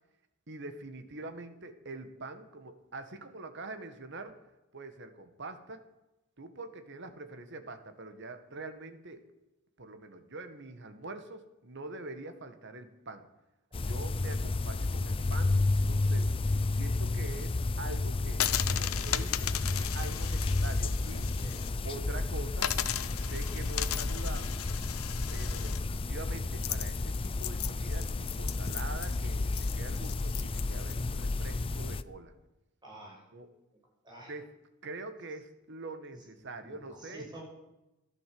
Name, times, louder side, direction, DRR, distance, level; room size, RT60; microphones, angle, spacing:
voice 1, 0.5-4.4 4.7-5.8 6.4-9.2 9.8-13.3 13.8-21.3 21.8-22.7 23.1-24.7 25.3-32.3 33.3-33.5 34.3-34.5 34.8-37.3, right 2 dB, 55° right, 8 dB, 1.7 m, -44 dB
sound 1, 13.7-32.0, left 2 dB, 25° left, 0.4 m, -31 dB
sound 2, 18.3-21.7 22.0-22.1 22.6-30.9, left 11 dB, 75° left, 0.8 m, -36 dB
voice 2, 21.4-22.0 32.8-33.2 34.0-34.3 36.1-37.4, right 1 dB, 20° right, -2 dB, 5.9 m, -49 dB
15.5 x 12.0 x 7.8 m, 0.96 s
head